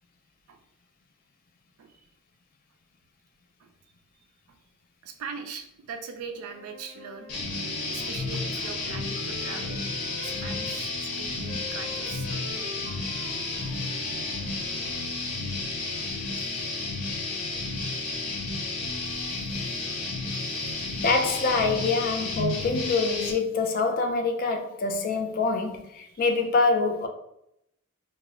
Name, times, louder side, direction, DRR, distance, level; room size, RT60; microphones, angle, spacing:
voice 1, 5.0-7.6 7.9-9.9 10.2-12.3 13.1-13.2, right 5 dB, 80° right, 0.4 m, -40 dB
Wind instrument woodwind instrument, 6.3-10.8 11.4-15.1, left 1 dB, 45° right, 0.7 m, -44 dB
sound 1, 7.3-23.3, left 3 dB, 80° left, 0.6 m, -32 dB
voice 2, 21.0-27.1, left 4 dB, 40° left, 0.3 m, -25 dB
2.0 x 2.0 x 3.5 m
head